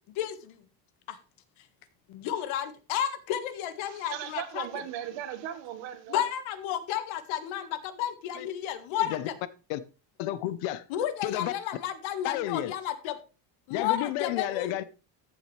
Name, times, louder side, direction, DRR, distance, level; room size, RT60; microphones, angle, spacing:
voice 1, 0.1-0.6 1.1-1.2 1.6-1.7 2.1-4.7 6.1-9.3 10.9-13.1 13.7-14.7, left 10 dB, 70° left, 1.7 m, -32 dB
voice 2, 3.8-6.2, right 10 dB, 65° right, 1.7 m, -37 dB
voice 3, 10.2-10.8 11.2-11.5 12.2-12.7 13.7-14.8, left 14 dB, 90° left, 1.0 m, -31 dB
14.0 x 7.4 x 3.3 m
cardioid pair, 145°, 48 cm